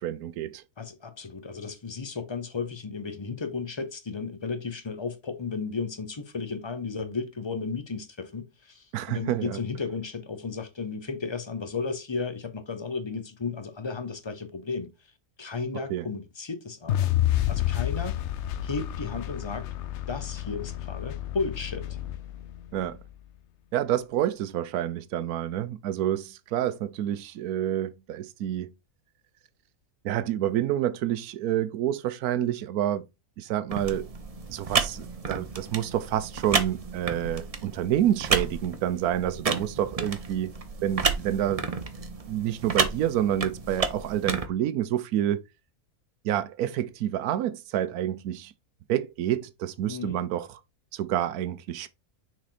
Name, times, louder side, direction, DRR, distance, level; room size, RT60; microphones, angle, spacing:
voice 1, 0.0-0.6 8.9-9.6 15.9-16.0 22.7-23.0 23.7-28.7 30.0-33.0 33.4-34.1 34.5-40.5 40.8-41.7 42.3-45.4 46.2-48.5 48.9-50.5 50.9-51.9, right 11 dB, 80° right, 1.1 m, -28 dB
voice 2, 0.8-14.9 15.4-17.1 17.5-18.2 18.6-19.7 20.1-21.9 49.9-50.2, left 4 dB, 30° left, 0.6 m, -34 dB
sound 1, 16.9-23.1, left 13 dB, 65° left, 0.7 m, -30 dB
sound 2, 33.7-44.5, right 5 dB, 40° right, 0.5 m, -31 dB
6.2 x 4.3 x 4.1 m
omnidirectional pair, 1.6 m